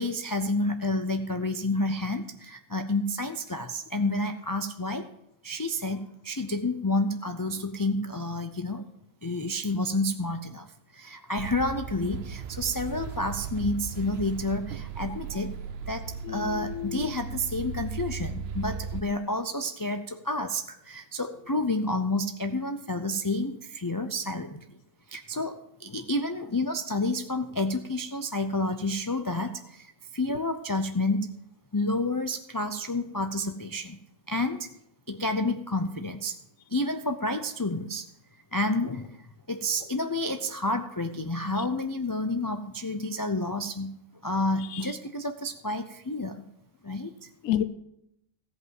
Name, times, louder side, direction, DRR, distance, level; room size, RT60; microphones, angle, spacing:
voice 1, 0.0-5.1 5.4-8.9 9.2-10.7 10.9-15.5 15.9-24.6 25.1-31.3 31.7-34.0 34.3-34.7 35.1-36.4 36.7-38.1 38.5-44.0 44.2-46.4 46.8-47.3, left 2 dB, 30° left, 7 dB, 0.4 m, -30 dB
sound 1, 11.4-19.0, right 6 dB, 60° right, 0.8 m, -37 dB
voice 2, 16.2-17.1 44.7-44.8 47.4-47.6, left 11 dB, 80° left, 13 dB, 1.0 m, -30 dB
15.0 x 5.5 x 7.6 m, 0.77 s
omnidirectional pair, 1.3 m